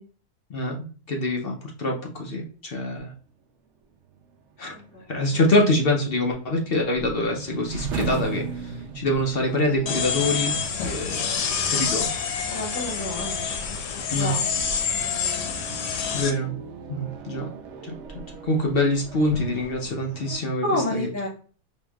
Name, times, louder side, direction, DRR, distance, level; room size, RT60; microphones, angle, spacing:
voice 1, 1.1-3.1 4.6-4.7 5.1-10.6 10.8-11.3 11.7-12.1 14.1-14.3 15.6-15.7 16.1-16.5 16.9-17.5 17.8-17.9 18.4-21.3, left 1 dB, 55° left, 1 dB, 0.7 m, -25 dB
sound 1, 3.4-20.4, right 5 dB, 70° right, 0.7 m, -39 dB
voice 2, 4.7-5.0 12.5-13.5 14.1-14.5 14.9-15.6 20.6-21.3, left 1 dB, 10° left, -8 dB, 0.9 m, -30 dB
sound 2, 9.9-16.3, left 6 dB, 85° left, 1.3 m, -27 dB
4.4 x 2.8 x 2.3 m, 0.40 s
omnidirectional pair, 1.7 m